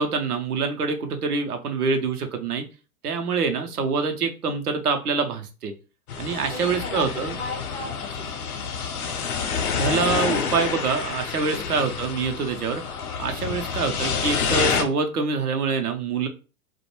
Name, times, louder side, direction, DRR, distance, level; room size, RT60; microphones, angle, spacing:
voice 1, 0.0-2.6 3.0-5.7 6.2-7.3 9.8-12.8 13.2-16.3, right 5 dB, 90° right, 5 dB, 0.7 m, -25 dB
sound 1, 6.1-14.8, left 6 dB, 80° left, 0.6 m, -28 dB
voice 2, 6.5-8.7 11.4-11.8 13.4-13.7, left 2 dB, 15° left, -3 dB, 0.3 m, -37 dB
2.2 x 2.1 x 2.9 m, 0.33 s
hypercardioid pair, 105°, 44 cm